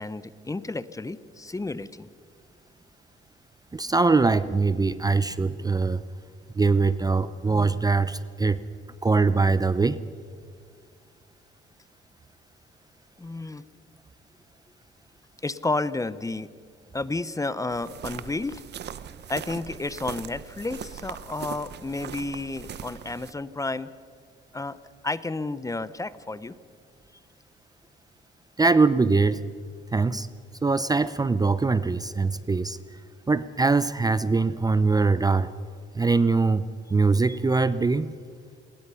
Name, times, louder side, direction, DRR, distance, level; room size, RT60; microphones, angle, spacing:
voice 1, 0.0-2.1 13.2-13.7 15.4-16.5 16.9-18.6 19.3-23.9 24.5-24.8 25.0-26.6, left 2 dB, 15° left, 15 dB, 0.8 m, -31 dB
voice 2, 3.7-6.0 6.5-8.6 9.0-10.0 28.6-29.4 29.9-30.3 30.6-33.0 33.3-35.5 35.9-38.1, right 3 dB, 20° right, 15 dB, 0.6 m, -22 dB
sound 1, 17.7-23.3, right 9 dB, 60° right, 0.9 m, -40 dB
27.0 x 20.0 x 5.7 m, 2.1 s
cardioid pair, 90°, 20 cm